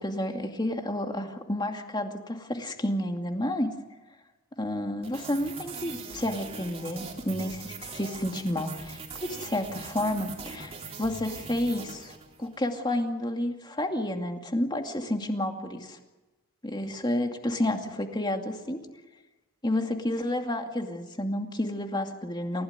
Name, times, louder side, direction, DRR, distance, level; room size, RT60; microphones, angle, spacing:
voice 1, 0.0-3.7 4.6-16.0 16.6-18.8 19.6-22.6, left 1 dB, 20° left, 4 dB, 2.4 m, -30 dB
sound 1, 5.0-12.6, right 4 dB, 30° right, 3.5 m, -42 dB
29.5 x 16.5 x 9.6 m, 1.1 s
head